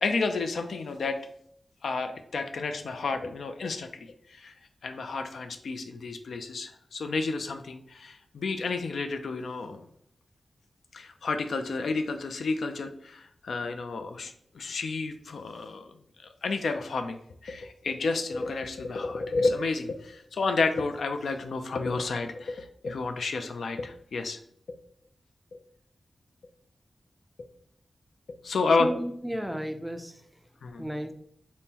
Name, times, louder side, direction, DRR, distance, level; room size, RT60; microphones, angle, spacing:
voice 1, 0.0-1.2 1.8-4.5 4.8-9.9 10.9-15.9 16.2-17.2 17.4-24.4 24.7-24.8 25.5-25.6 28.4-28.9 30.6-30.8, left 3 dB, 90° left, 7 dB, 0.3 m, -31 dB
voice 2, 28.8-30.5 30.8-31.1, equal, ahead, 6 dB, 0.3 m, -33 dB
5.3 x 2.1 x 2.8 m, 0.68 s
wide cardioid pair, 165°, 0 cm